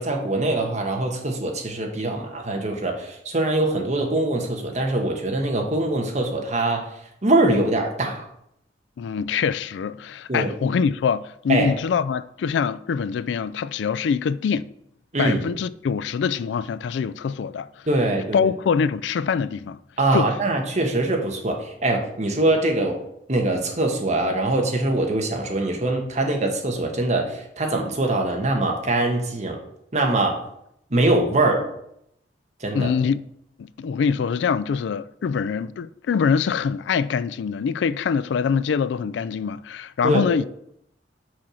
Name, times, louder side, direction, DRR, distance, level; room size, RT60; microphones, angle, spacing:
voice 1, 0.0-6.9 7.2-8.2 10.3-10.5 11.5-11.7 15.1-15.4 17.9-18.5 20.0-23.0 23.3-29.6 29.9-30.4 30.9-31.7 32.6-32.9 40.0-40.2, right 2 dB, 40° right, 1.2 m, -23 dB
voice 2, 9.0-14.7 15.2-17.7 18.3-19.8 20.1-20.3 32.7-33.2 33.6-40.4, left 6 dB, 80° left, 0.3 m, -24 dB
6.2 x 4.3 x 6.2 m
head